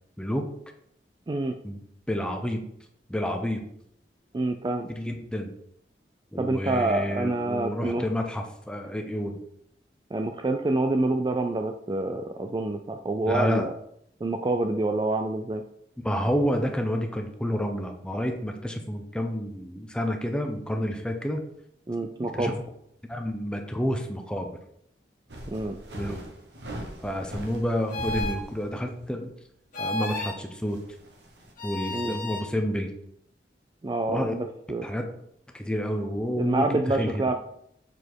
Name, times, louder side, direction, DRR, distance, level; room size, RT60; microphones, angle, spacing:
voice 1, 2.1-2.6 3.1-3.6 4.9-5.5 6.3-9.4 13.2-13.7 16.0-21.4 22.3-22.5 23.1-24.6 25.9-26.2 27.0-29.3 29.8-30.8 31.6-32.9 34.1-34.3 34.8-35.1 35.5-37.2, equal, 5° left, 4 dB, 0.8 m, -29 dB
voice 2, 4.3-4.9 6.4-8.0 10.1-13.7 14.2-15.6 21.9-22.5 25.5-25.8 31.9-32.2 33.8-34.9 36.4-37.3, right 2 dB, 25° right, 6 dB, 0.4 m, -27 dB
sound 1, 25.3-28.9 29.2-29.3 29.9-31.5, equal, 75° right, 1.4 m, -40 dB
sound 2, 27.9-28.4 29.7-30.4 31.6-32.5, left 2 dB, 50° left, 1.8 m, -32 dB
7.2 x 4.3 x 4.6 m, 0.72 s
head